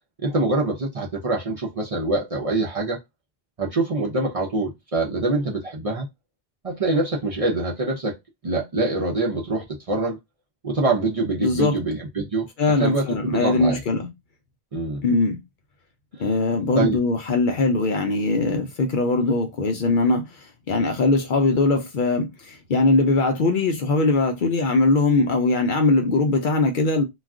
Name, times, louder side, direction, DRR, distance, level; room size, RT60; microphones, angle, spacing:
voice 1, 0.2-3.0 3.6-6.1 6.6-8.1 8.4-10.2 10.6-12.5 12.8-13.8 14.7-15.0 16.8-17.0, right 2 dB, 40° right, 0.6 m, -24 dB
voice 2, 11.4-11.8 12.6-14.1 15.0-15.4 16.2-27.0, left 3 dB, 60° left, 0.6 m, -21 dB
2.3 x 2.3 x 3.5 m
omnidirectional pair, 1.1 m